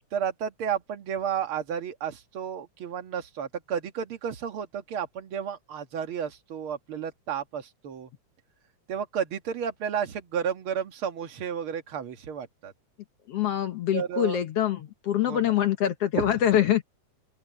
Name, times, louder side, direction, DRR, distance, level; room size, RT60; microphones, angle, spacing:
voice 1, 0.1-8.1 8.9-12.7 13.9-14.4 15.3-15.4 16.2-16.3, right 8 dB, 50° right, 2.0 m, -32 dB
voice 2, 13.3-16.8, left 11 dB, 65° left, 1.6 m, -25 dB
open air
omnidirectional pair, 3.7 m